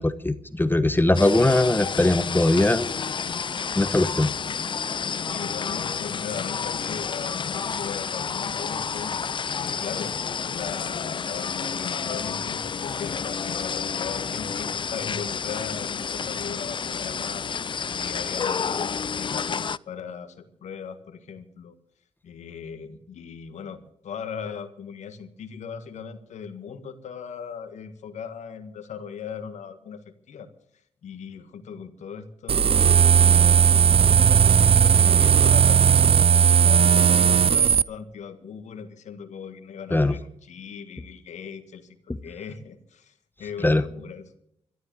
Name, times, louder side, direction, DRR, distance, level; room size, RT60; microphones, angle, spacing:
voice 1, 0.0-2.9 3.8-4.3 39.9-40.1 43.6-43.8, left 2 dB, 15° left, 13 dB, 1.0 m, -20 dB
sound 1, 1.1-19.8, left 6 dB, 40° left, 0.5 m, -30 dB
voice 2, 5.2-9.1 9.5-10.2 10.4-17.5 17.9-21.7 22.2-30.5 31.0-33.8 34.1-42.0 42.2-43.1 43.4-44.3, left 7 dB, 75° left, 9 dB, 1.7 m, -38 dB
sound 2, 32.5-37.8, right 8 dB, 50° right, 0.5 m, -17 dB
13.0 x 12.5 x 7.6 m, 0.73 s
supercardioid pair, 45°, 12 cm